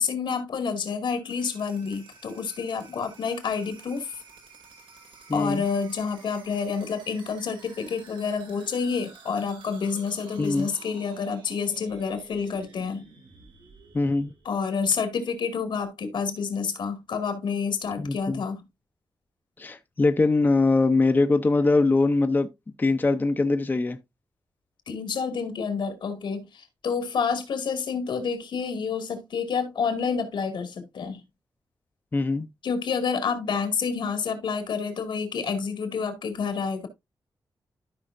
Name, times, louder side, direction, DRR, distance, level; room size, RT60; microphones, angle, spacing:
voice 1, 0.0-4.1 5.3-13.1 14.4-18.6 24.9-31.2 32.6-36.9, left 5 dB, 80° left, 2.1 m, -29 dB
sound 1, 1.2-15.0, right 4 dB, 85° right, 2.6 m, -51 dB
voice 2, 5.3-5.6 10.4-10.7 13.9-14.3 18.0-18.4 19.6-22.5 22.8-24.0 32.1-32.5, left 3 dB, 25° left, 0.6 m, -22 dB
13.0 x 5.5 x 2.6 m
wide cardioid pair, 140°, 8 cm